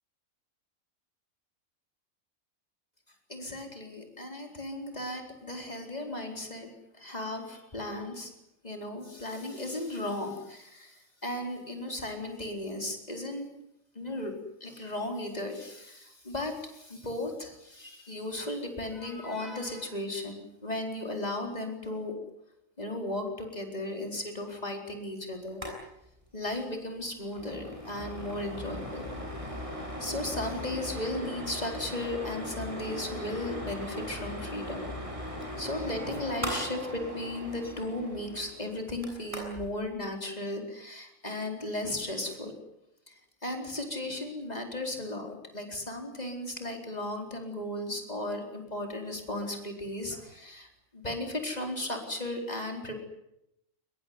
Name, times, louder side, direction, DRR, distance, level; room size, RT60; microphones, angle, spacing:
voice 1, 3.3-8.3 8.6-13.5 13.9-14.3 14.6-22.2 22.8-25.6 26.3-29.1 30.0-34.9 35.6-42.6 43.1-53.0, left 1 dB, 30° left, 3 dB, 4.5 m, -36 dB
sound 1, 25.5-25.8 26.0-26.1 26.4-26.6 27.0-39.7, equal, 25° right, 8.0 m, -39 dB
24.0 x 21.0 x 9.6 m, 0.85 s
omnidirectional pair, 1.4 m